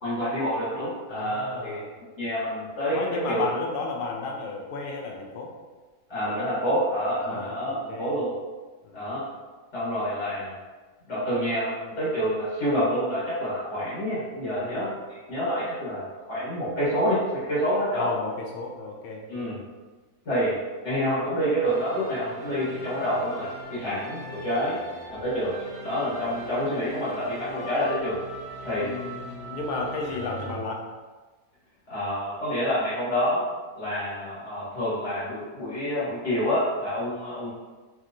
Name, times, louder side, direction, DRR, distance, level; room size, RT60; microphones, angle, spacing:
voice 1, 0.0-1.8 2.1-3.4 6.1-8.3 8.9-9.2 9.7-10.5 11.1-14.9 15.3-18.0 19.3-19.6 20.2-20.5 20.8-24.8 25.1-25.5 25.8-28.2 28.6-28.9 31.9-33.5 33.7-37.5, equal, 55° left, -11 dB, 1.4 m, -27 dB
voice 2, 1.1-1.9 2.9-5.5 7.1-8.1 8.8-9.1 14.6-14.9 17.9-19.2 28.7-30.9, left 4 dB, 75° left, 1 dB, 0.5 m, -33 dB
sound 1, 21.6-30.5, right 1 dB, 60° right, 0.7 m, -40 dB
3.1 x 2.8 x 2.5 m, 1.3 s
omnidirectional pair, 1.5 m